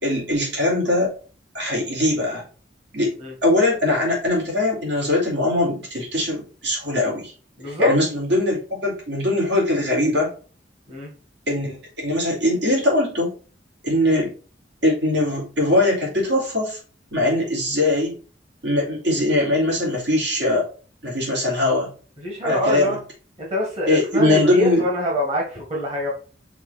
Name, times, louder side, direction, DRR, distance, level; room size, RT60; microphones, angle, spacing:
voice 1, 0.0-1.1 1.5-2.4 2.9-3.1 3.4-7.3 7.7-10.3 11.5-13.3 13.8-14.3 14.8-16.8 17.1-18.1 18.6-20.7 21.0-21.9 22.4-23.0 23.9-24.8, left 1 dB, 70° right, -3 dB, 3.4 m, -21 dB
voice 2, 7.6-7.9 10.9-11.1 22.2-23.0 23.4-26.1, equal, 35° right, -2 dB, 1.9 m, -25 dB
5.8 x 3.9 x 4.2 m, 0.37 s
head